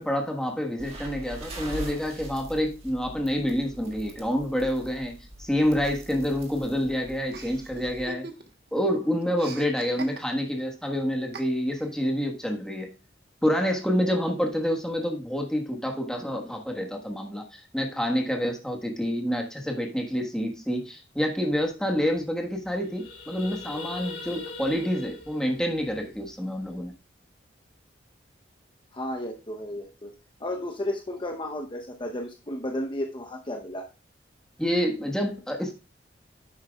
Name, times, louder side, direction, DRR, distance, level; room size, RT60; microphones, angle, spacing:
voice 1, 0.0-5.1 5.4-8.3 8.7-12.9 13.4-26.9 34.6-35.7, equal, 5° left, 1.4 m, -28 dB
sound 1, 0.8-8.1, right 1 dB, 35° right, 2.0 m, -42 dB
Chuckle chortle, 7.3-8.7 8.9-10.6 11.3-11.9, right 3 dB, 60° right, 1.2 m, -42 dB
sound 2, 21.6-21.7 22.0-22.2 22.5-26.9, left 4 dB, 60° left, 3.1 m, -42 dB
voice 2, 28.9-30.1 30.4-33.9, left 1 dB, 25° left, 0.8 m, -33 dB
10.0 x 7.9 x 2.4 m
head